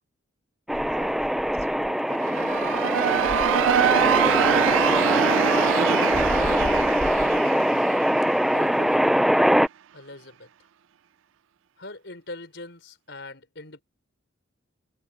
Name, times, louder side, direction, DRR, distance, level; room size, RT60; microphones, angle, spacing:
sound 1, 0.7-9.7, equal, ahead, 0.4 m, -22 dB
voice 1, 0.7-2.9, right 2 dB, 35° right, 4.7 m, -47 dB
sound 2, 2.1-8.9, right 9 dB, 80° right, 0.4 m, -25 dB
voice 2, 8.4-9.3 9.9-10.5 11.8-13.8, left 2 dB, 60° left, 5.5 m, -41 dB
head